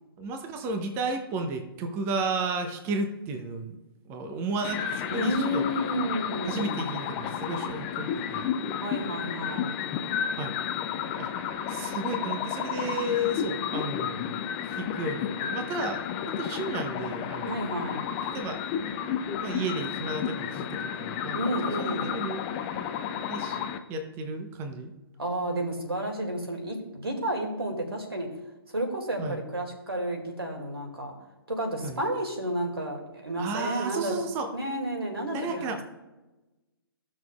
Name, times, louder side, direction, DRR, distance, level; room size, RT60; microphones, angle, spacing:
voice 1, 0.2-3.8 4.1-5.6 6.4-8.5 10.4-10.6 11.2-11.3 11.7-17.5 18.3-18.6 19.4-22.4 23.3-23.6 23.9-24.9 29.2-29.4 31.8-32.0 33.4-34.5 35.3-35.8, right 2 dB, 20° right, 7 dB, 0.8 m, -33 dB
sound 1, 4.6-23.8, left 8 dB, 20° left, 0.4 m, -32 dB
voice 2, 5.1-6.9 8.8-9.8 17.4-18.1 21.3-22.2 25.2-28.3 28.7-31.1 31.5-34.1 34.5-35.8, right 1 dB, 80° right, 2 dB, 2.3 m, -31 dB
15.0 x 6.3 x 2.4 m, 1.1 s
figure-of-eight pair, 130°, 13 cm